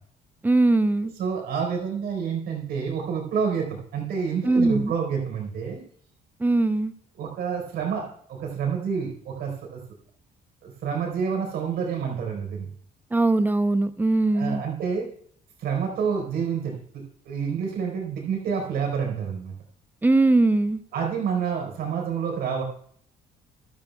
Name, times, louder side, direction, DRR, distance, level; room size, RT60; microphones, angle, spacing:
voice 1, 0.4-1.1 4.5-4.9 6.4-6.9 13.1-14.6 20.0-20.8, right 2 dB, 10° right, 13 dB, 0.6 m, -21 dB
voice 2, 1.2-5.8 7.2-9.8 10.6-12.7 14.3-15.1 15.6-19.5 20.9-22.6, right 6 dB, 70° right, 1 dB, 4.3 m, -28 dB
13.0 x 12.5 x 2.3 m, 0.64 s
cardioid pair, 110°, 17 cm